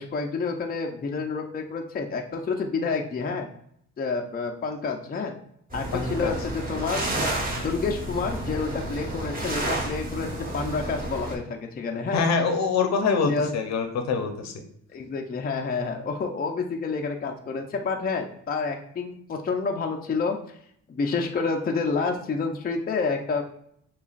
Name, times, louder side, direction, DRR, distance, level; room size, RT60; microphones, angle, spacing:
voice 1, 0.0-3.5 4.0-5.3 5.7-7.1 7.5-12.3 13.3-13.5 14.9-20.4 20.9-23.4, left 4 dB, 30° left, 2 dB, 0.6 m, -29 dB
sound 1, 5.7-11.4, right 1 dB, 30° right, 1.5 m, -31 dB
voice 2, 5.9-6.3 12.1-14.5, left 5 dB, 60° left, 6 dB, 0.8 m, -25 dB
7.0 x 2.4 x 2.4 m, 0.69 s
cardioid pair, 90°, 30 cm